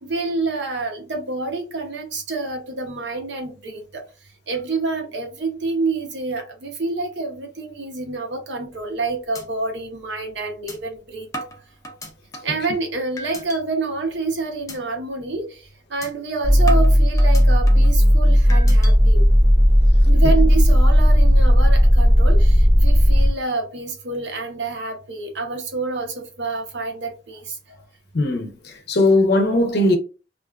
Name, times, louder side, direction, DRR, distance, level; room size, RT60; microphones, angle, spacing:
voice 1, 0.0-4.0 4.5-11.3 12.4-15.5 15.9-19.2 20.1-27.5, right 3 dB, 65° right, 0.7 m, -27 dB
sound 1, 8.7-9.0 9.3-9.4 9.9-10.0 10.7-10.8 11.3-12.6 13.2-13.6 14.0-14.3 14.7-14.8 15.2-15.4 16.0-16.1 16.7-17.9 18.5-18.9, equal, 20° left, 0.3 m, -35 dB
sound 2, 16.4-23.3, equal, 10° right, 0.8 m, -14 dB
voice 2, 28.1-30.0, left 2 dB, 60° left, 0.6 m, -19 dB
2.4 x 2.3 x 2.3 m
head